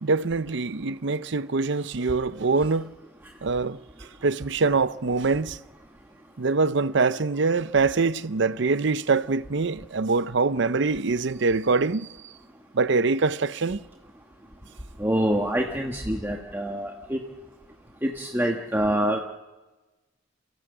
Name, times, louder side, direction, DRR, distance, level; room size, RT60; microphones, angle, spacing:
voice 1, 0.0-2.9 3.4-3.8 4.2-5.6 6.4-12.1 12.7-13.8, right 4 dB, 65° right, 0.7 m, -24 dB
voice 2, 15.0-17.2 18.0-19.2, right 1 dB, 10° right, 1.4 m, -26 dB
29.0 x 16.0 x 7.9 m
head